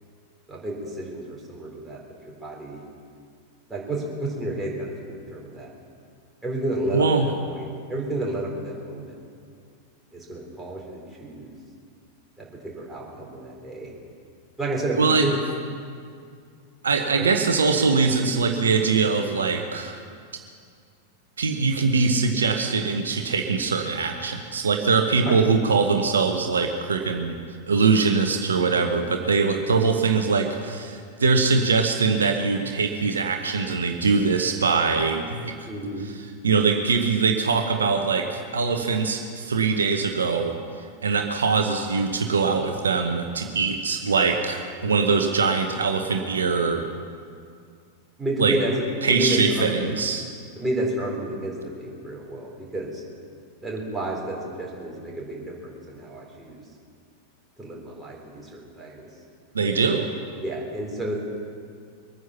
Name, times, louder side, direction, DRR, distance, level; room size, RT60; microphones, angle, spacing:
voice 1, 0.5-2.0 2.2-2.8 3.7-5.7 6.4-9.1 10.1-11.5 12.4-12.5 12.7-13.9 14.6-15.4 17.1-17.3 25.3-25.4 35.7-36.1 48.2-48.7 49.1-49.9 50.6-53.0 53.6-56.6 57.6-59.1 60.4-61.2, right 1 dB, 5° right, -4 dB, 3.9 m, -30 dB
voice 2, 6.9-7.3 15.0-15.3 16.8-20.0 21.4-27.4 27.7-35.7 36.4-40.5 41.0-46.8 48.4-48.6 49.0-50.2 59.5-60.1, right 4 dB, 70° right, 5 dB, 1.0 m, -22 dB
23.0 x 9.5 x 5.8 m, 2.2 s
figure-of-eight pair, 90°, 0 cm